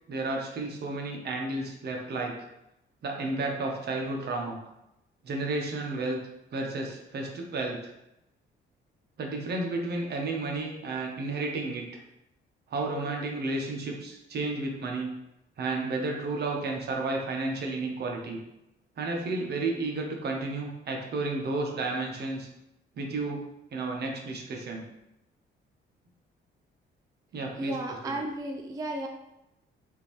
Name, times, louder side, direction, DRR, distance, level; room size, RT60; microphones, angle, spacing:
voice 1, 0.1-2.3 3.0-4.6 5.2-6.2 6.5-7.9 9.2-12.0 12.7-15.1 15.6-18.4 19.0-22.5 23.0-23.4 23.7-24.8 27.3-27.8 28.0-28.1, right 2 dB, 55° right, 1 dB, 0.8 m, -32 dB
voice 2, 27.6-29.1, right 2 dB, 20° right, 2 dB, 0.4 m, -33 dB
3.6 x 2.6 x 3.0 m, 0.88 s
cardioid pair, 90°, 20 cm